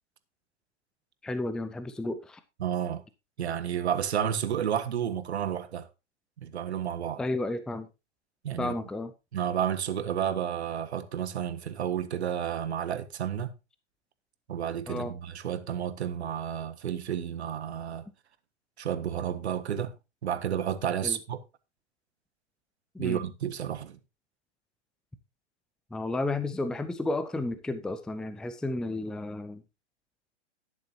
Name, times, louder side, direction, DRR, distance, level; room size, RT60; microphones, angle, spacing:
voice 1, 1.2-2.4 7.2-7.9 8.6-9.1 14.9-15.1 21.0-21.2 22.9-23.2 25.9-29.6, left 2 dB, ahead, 0.6 m, -32 dB
voice 2, 2.6-3.0 3.4-5.9 6.4-7.2 8.4-8.7 9.3-13.5 14.5-18.0 18.8-19.9 20.2-21.4 23.0-24.0, right 9 dB, 65° right, 1.5 m, -31 dB
13.0 x 10.5 x 2.8 m
figure-of-eight pair, 120°, 35 cm